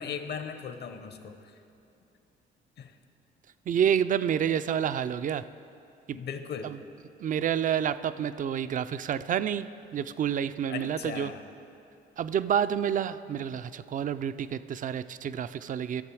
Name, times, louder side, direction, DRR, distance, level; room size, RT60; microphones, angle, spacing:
voice 1, 0.0-1.5 2.8-2.9 6.1-6.7 10.7-11.4, left 6 dB, 55° left, 8 dB, 0.9 m, -38 dB
voice 2, 3.7-5.4 6.6-6.8 7.2-9.7 9.9-11.3 12.2-16.0, right 8 dB, 40° right, 13 dB, 0.4 m, -28 dB
14.0 x 6.8 x 4.8 m, 2.7 s
cardioid pair, 90°, 20 cm